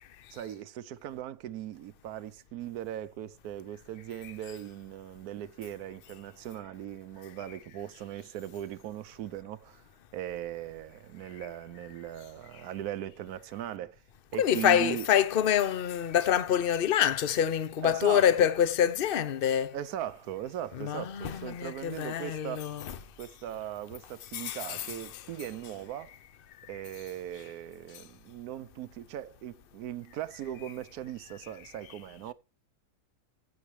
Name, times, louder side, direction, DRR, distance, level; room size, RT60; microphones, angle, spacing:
voice 1, 0.3-9.8 10.1-14.0 14.3-15.1 17.8-18.5 19.7-22.7 23.2-26.1 26.7-32.3, right 12 dB, 70° right, 1.2 m, -39 dB
voice 2, 14.3-19.7 20.8-23.0 24.3-25.2, left 9 dB, 45° left, 0.8 m, -26 dB
16.0 x 7.4 x 3.2 m
omnidirectional pair, 1.7 m